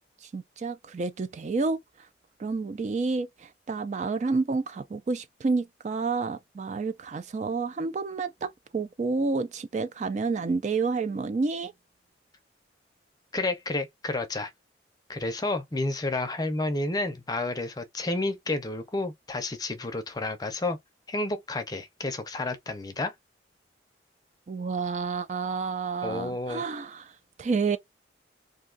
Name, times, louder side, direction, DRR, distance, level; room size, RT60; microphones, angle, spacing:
voice 1, 0.2-1.8 2.4-11.7 24.5-27.1 27.4-27.8, right 4 dB, 40° right, 0.3 m, -29 dB
voice 2, 13.3-14.5 15.1-20.8 21.1-23.1 26.0-26.6, left 2 dB, 20° left, 0.5 m, -30 dB
2.6 x 2.3 x 3.7 m
head